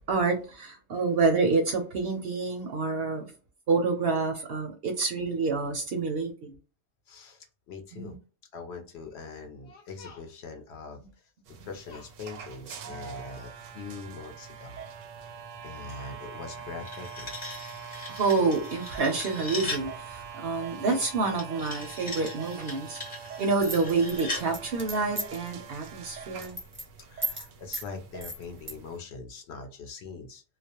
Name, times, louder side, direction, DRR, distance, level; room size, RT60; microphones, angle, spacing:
voice 1, 0.1-3.3 3.7-6.6 7.9-8.2 11.6-11.7 18.1-23.0 23.4-26.6, right 4 dB, 60° right, 0.7 m, -28 dB
voice 2, 7.1-8.2 8.5-11.0 11.6-14.8 15.2-15.3 15.6-17.3 27.0-30.4, left 4 dB, 65° left, 0.8 m, -42 dB
sound 1, 11.5-29.0, right 6 dB, 85° right, 0.9 m, -44 dB
sound 2, 16.6-19.9 21.4-24.5, left 2 dB, 25° left, 0.8 m, -39 dB
sound 3, 23.6-25.5 25.8-26.1 26.4-26.8 27.2-27.5 27.7-27.9 28.2-28.7, right 1 dB, 15° right, 0.6 m, -34 dB
2.3 x 2.0 x 2.8 m
omnidirectional pair, 1.3 m